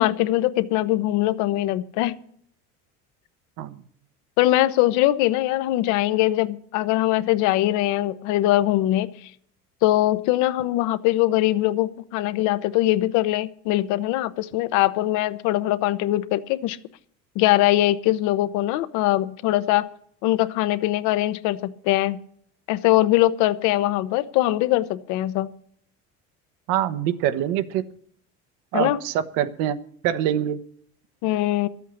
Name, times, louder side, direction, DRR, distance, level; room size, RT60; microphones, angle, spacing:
voice 1, 0.0-2.2 4.4-9.1 9.8-16.8 17.3-19.9 20.2-22.2 22.7-25.5 28.7-29.0 31.2-31.7, left 15 dB, 70° left, 13 dB, 1.0 m, -22 dB
voice 2, 26.7-27.8 28.7-29.8 30.0-30.6, right 10 dB, 80° right, 12 dB, 1.2 m, -24 dB
13.0 x 8.3 x 8.3 m, 0.62 s
cardioid pair, 165°, 31 cm